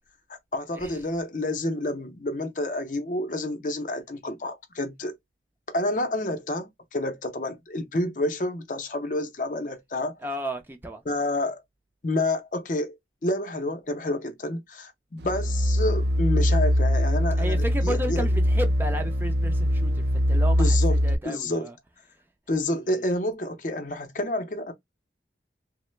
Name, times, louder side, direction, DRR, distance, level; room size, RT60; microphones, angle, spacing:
voice 1, 0.3-5.2 5.7-10.2 11.1-11.6 12.0-13.0 13.2-18.3 20.6-21.0 21.2-21.7 22.5-24.7, left 1 dB, 45° left, 0.6 m, -29 dB
voice 2, 10.2-11.0 17.4-21.7 22.6-22.8, equal, 10° right, 0.4 m, -33 dB
sound 1, 15.2-21.1, equal, 70° right, 0.4 m, -22 dB
3.1 x 2.0 x 3.1 m
head